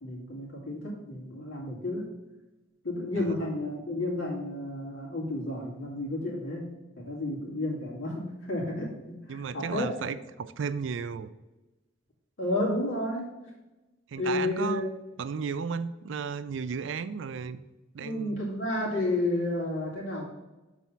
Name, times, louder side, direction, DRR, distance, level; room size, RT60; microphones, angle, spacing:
voice 1, 0.0-2.0 2.8-6.7 7.0-9.9 12.4-13.3 14.2-14.9 18.0-20.2, left 1 dB, 85° left, -4 dB, 2.5 m, -31 dB
voice 2, 9.3-11.3 14.1-14.8 15.2-17.6 17.9-18.4, right 6 dB, 65° right, 13 dB, 0.4 m, -34 dB
5.6 x 4.1 x 6.0 m, 1.1 s
head